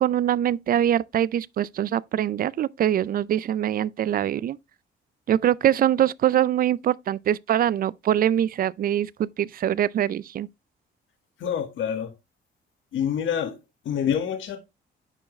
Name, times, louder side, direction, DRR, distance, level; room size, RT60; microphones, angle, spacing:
voice 1, 0.0-4.6 5.3-10.5, right 11 dB, 45° right, 0.4 m, -23 dB
voice 2, 11.4-12.1 12.9-13.6 13.9-14.6, left 8 dB, 75° left, 1.6 m, -26 dB
9.7 x 4.6 x 3.1 m
cardioid pair, 90°, 20 cm